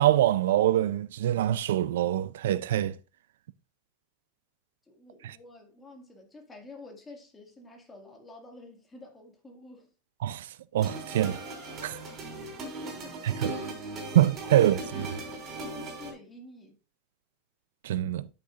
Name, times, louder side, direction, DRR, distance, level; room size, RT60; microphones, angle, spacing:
voice 1, 0.0-3.0 5.2-5.4 10.2-11.4 11.8-12.0 13.2-13.6 14.1-15.1 17.8-18.3, right 12 dB, 90° right, 0.4 m, -25 dB
voice 2, 4.9-9.9 12.4-13.2 14.4-14.8 15.6-16.8, left 2 dB, 15° left, 2.0 m, -49 dB
sound 1, 10.8-16.1, right 2 dB, 30° right, 3.9 m, -38 dB
12.0 x 6.6 x 2.5 m
supercardioid pair, 155°, 0 cm